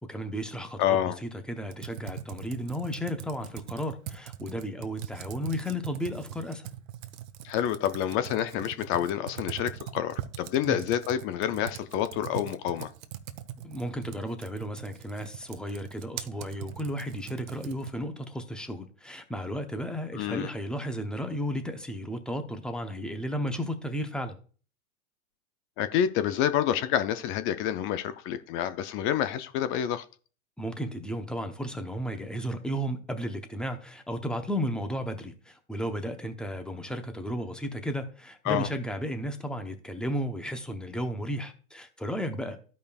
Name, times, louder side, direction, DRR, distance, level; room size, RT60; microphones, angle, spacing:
voice 1, 0.0-6.7 10.6-10.8 13.6-24.4 30.6-42.6, equal, ahead, 0.7 m, -34 dB
voice 2, 0.8-1.2 7.4-12.9 20.1-20.5 25.8-30.0 38.5-38.7, left 10 dB, 30° left, 0.4 m, -28 dB
Computer keyboard, 1.6-18.1, right 11 dB, 65° right, 0.9 m, -42 dB
13.5 x 5.2 x 2.3 m
hypercardioid pair, 120°, 44 cm